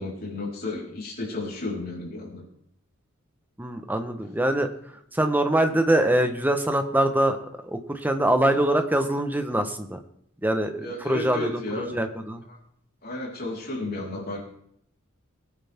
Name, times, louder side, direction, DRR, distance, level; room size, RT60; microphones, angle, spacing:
voice 1, 0.0-2.4 10.8-11.9 12.5-12.6 13.0-14.4, left 2 dB, 45° left, -3 dB, 4.5 m, -33 dB
voice 2, 3.6-4.7 5.1-7.4 7.6-10.0 10.4-11.6 11.9-12.4, right 1 dB, 10° right, 6 dB, 1.2 m, -23 dB
21.5 x 9.6 x 3.7 m, 0.68 s
head